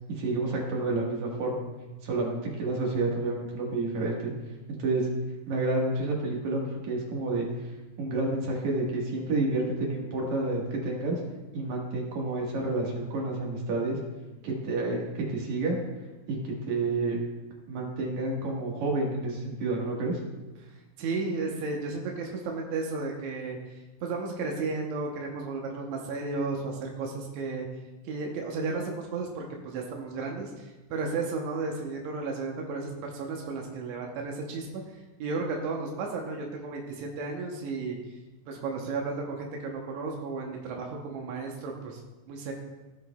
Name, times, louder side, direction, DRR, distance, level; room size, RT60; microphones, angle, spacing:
voice 1, 0.2-1.7 2.0-4.3 4.7-5.1 5.5-7.5 8.0-11.2 11.5-14.0 14.4-15.8 16.3-17.2 17.7-20.2, right 2 dB, 55° right, -2 dB, 2.6 m, -29 dB
voice 2, 21.0-23.6 24.0-27.7 28.0-38.0 38.5-42.0 42.3-42.5, right 3 dB, 80° right, 0 dB, 1.6 m, -33 dB
16.0 x 6.0 x 2.3 m, 1.1 s
omnidirectional pair, 4.4 m